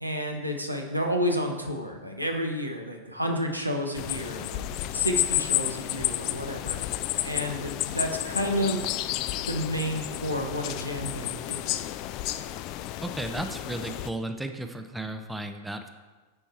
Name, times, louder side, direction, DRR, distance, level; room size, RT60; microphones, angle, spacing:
voice 1, 0.0-4.7 4.9-6.9 7.2-8.9 9.5-11.8, equal, 85° right, 3 dB, 0.9 m, -30 dB
sound 1, 3.9-14.1, left 14 dB, 40° left, 0.3 m, -31 dB
voice 2, 13.0-15.9, right 1 dB, 5° right, 7 dB, 0.5 m, -34 dB
10.0 x 4.6 x 4.2 m, 1.3 s
figure-of-eight pair, 90°, 0 cm